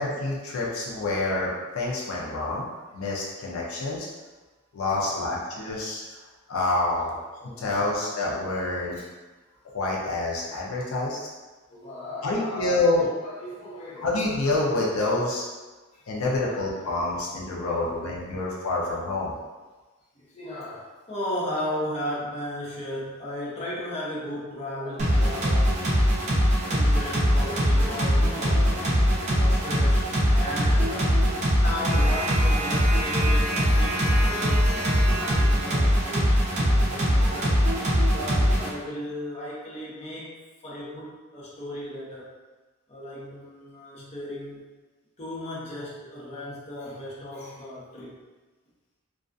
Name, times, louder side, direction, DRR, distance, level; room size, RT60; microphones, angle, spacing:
voice 1, 0.0-4.1 4.7-6.0 6.5-7.1 7.6-9.0 9.6-11.3 12.2-13.1 14.0-15.5 16.1-19.3, left 2 dB, 80° left, -4 dB, 0.5 m, -27 dB
voice 2, 4.9-5.3 7.1-7.9 11.7-14.1 15.9-16.0 16.4-17.3 17.6-18.4 20.1-25.8 26.7-31.2 31.5-34.6 35.1-37.7 38.0-40.4 40.6-42.3 42.9-44.6 45.2-48.2, left 1 dB, 30° left, -6 dB, 0.6 m, -36 dB
sound 1, 25.0-38.7, equal, 35° right, 0.5 m, -22 dB
2.3 x 2.3 x 2.5 m, 1.3 s
head